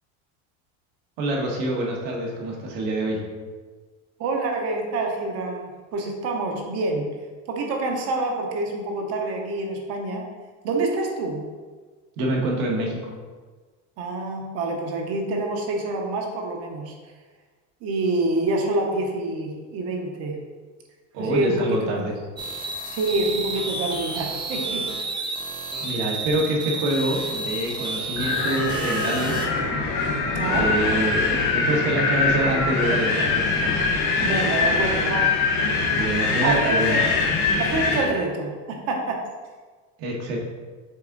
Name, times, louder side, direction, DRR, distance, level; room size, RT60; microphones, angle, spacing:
voice 1, 1.2-3.2 12.2-13.1 21.1-22.1 25.8-29.5 30.6-33.6 35.9-37.1 40.0-40.4, right 1 dB, 70° right, -1 dB, 1.6 m, -26 dB
voice 2, 4.2-7.1 7.5-10.3 10.6-11.5 14.0-16.9 17.8-20.4 21.2-22.0 22.8-24.9 30.3-30.7 34.2-35.5 36.4-37.0 37.6-39.2, right 2 dB, 45° right, 2 dB, 0.9 m, -27 dB
sound 1, 22.4-29.5, right 3 dB, 15° right, 0.4 m, -30 dB
Wind, 28.2-38.1, left 4 dB, 55° left, 1.2 m, -23 dB
6.8 x 3.6 x 3.9 m, 1.4 s
cardioid pair, 175°, 35 cm